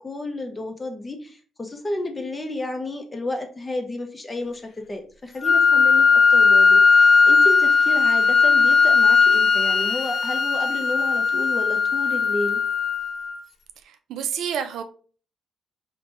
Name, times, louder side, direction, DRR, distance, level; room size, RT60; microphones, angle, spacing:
voice 1, 0.0-4.6 4.9-12.6, left 2 dB, 20° left, 0.6 m, -32 dB
Wind instrument woodwind instrument, 5.4-13.4, left 5 dB, 60° left, 0.4 m, -17 dB
voice 2, 13.9-14.8, right 8 dB, 80° right, 0.3 m, -29 dB
2.9 x 2.2 x 2.9 m
cardioid pair, 90°, 0 cm